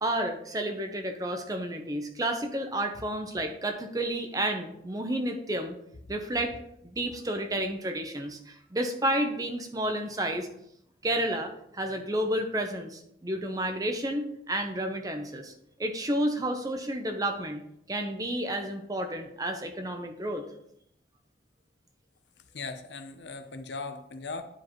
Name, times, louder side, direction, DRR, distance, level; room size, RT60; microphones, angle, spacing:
voice 1, 0.0-5.8 6.1-10.5 11.0-15.5 15.8-17.6 17.9-20.4, right 1 dB, 20° right, 5 dB, 0.7 m, -31 dB
voice 2, 22.5-24.4, left 3 dB, 80° left, 9 dB, 0.7 m, -38 dB
9.7 x 5.0 x 3.1 m, 0.75 s
head